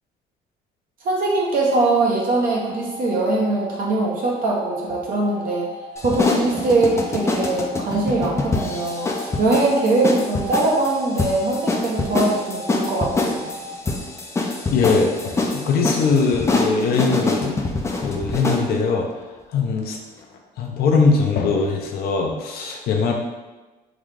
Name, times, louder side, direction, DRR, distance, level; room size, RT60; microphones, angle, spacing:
voice 1, 1.0-5.7 6.0-13.5, right 2 dB, 60° right, -3 dB, 0.7 m, -22 dB
sound 1, 2.1-13.8, equal, 90° right, 0.8 m, -37 dB
sound 2, 6.0-18.7, left 3 dB, 15° left, 0.4 m, -25 dB
voice 2, 14.7-17.6 18.0-19.2 19.5-20.0 20.6-23.1, left 4 dB, 65° left, 1 dB, 0.6 m, -21 dB
3.8 x 2.3 x 3.2 m, 1.1 s
cardioid pair, 110°, 17 cm